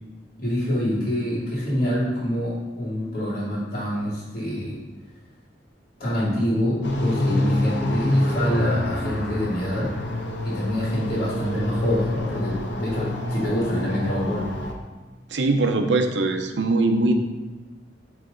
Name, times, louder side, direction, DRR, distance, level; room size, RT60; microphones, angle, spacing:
voice 1, 0.4-4.7 6.0-9.9 10.4-14.5, left 1 dB, 50° left, -6 dB, 1.8 m, -26 dB
sound 1, 6.8-14.7, left 1 dB, 80° left, 0.8 m, -27 dB
voice 2, 15.3-17.1, right 2 dB, 80° right, 6 dB, 0.6 m, -21 dB
8.5 x 3.3 x 3.9 m, 1.2 s
head